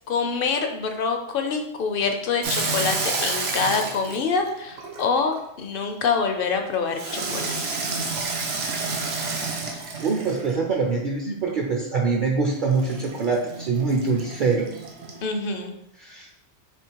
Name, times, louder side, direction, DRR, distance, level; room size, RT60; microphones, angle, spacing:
voice 1, 0.1-7.6 15.2-15.7, left 5 dB, 60° left, 5 dB, 0.6 m, -25 dB
Water tap faucet / Sink (filling or washing), 2.4-5.4 7.0-10.7 12.7-15.2, right 3 dB, 85° right, 1.0 m, -30 dB
voice 2, 10.0-14.8 16.0-16.3, right 4 dB, 55° right, 0 dB, 0.6 m, -24 dB
3.5 x 3.1 x 4.4 m, 0.81 s
omnidirectional pair, 1.2 m